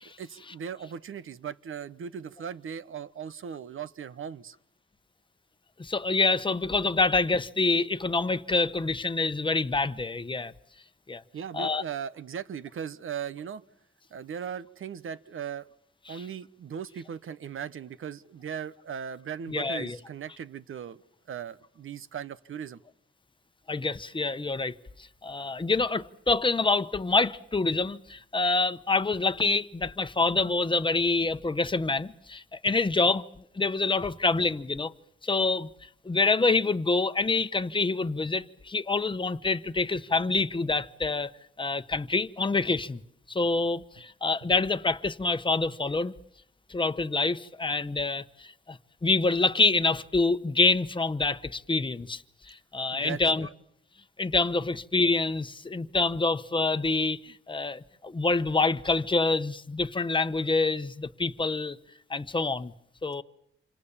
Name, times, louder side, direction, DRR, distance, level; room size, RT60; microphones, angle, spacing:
voice 1, 0.2-4.5 11.3-13.6 14.1-15.7 16.1-21.0 21.3-22.8 52.9-53.5, right 8 dB, 75° right, 1.0 m, -38 dB
voice 2, 5.8-10.5 11.1-11.2 11.5-11.8 16.1-16.2 19.5-20.0 23.7-24.8 25.2-33.2 33.5-34.9 35.2-41.3 41.6-43.0 43.3-46.1 46.7-53.5 54.2-61.8 62.1-62.7 63.0-63.2, left 3 dB, 25° left, 1.0 m, -26 dB
28.0 x 26.0 x 7.3 m
wide cardioid pair, 100°, 21 cm